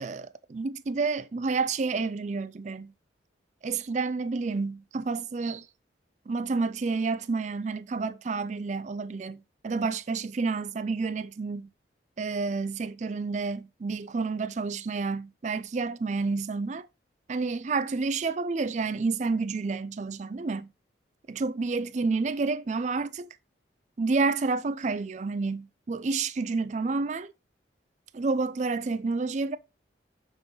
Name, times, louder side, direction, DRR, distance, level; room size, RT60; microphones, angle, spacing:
voice 1, 0.0-2.9 3.6-5.7 6.3-11.7 12.2-16.9 17.3-20.7 21.3-23.3 24.0-27.3 28.1-29.6, right 4 dB, 40° right, 0.4 m, -29 dB
6.2 x 3.8 x 5.4 m
head